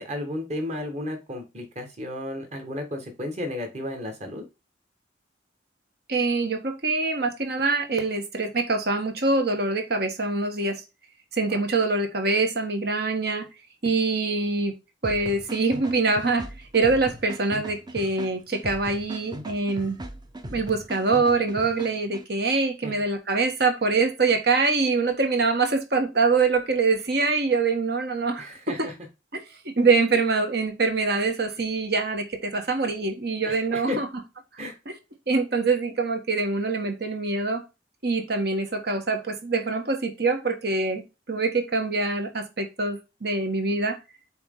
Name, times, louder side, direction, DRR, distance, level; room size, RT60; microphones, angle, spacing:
voice 1, 0.0-4.4 11.5-11.6 22.8-22.9 28.4-28.9 33.4-34.0 34.6-34.7, left 1 dB, 40° right, 5 dB, 1.7 m, -33 dB
voice 2, 6.1-10.8 11.3-13.5 13.8-14.7 15.0-16.5 16.7-20.0 20.5-28.5 28.8-28.9 29.3-29.4 29.6-34.1 35.3-37.6 38.0-44.0, right 3 dB, 60° right, 6 dB, 1.4 m, -24 dB
sound 1, 15.0-22.2, right 1 dB, 25° right, 0.7 m, -39 dB
8.0 x 3.2 x 3.9 m, 0.26 s
head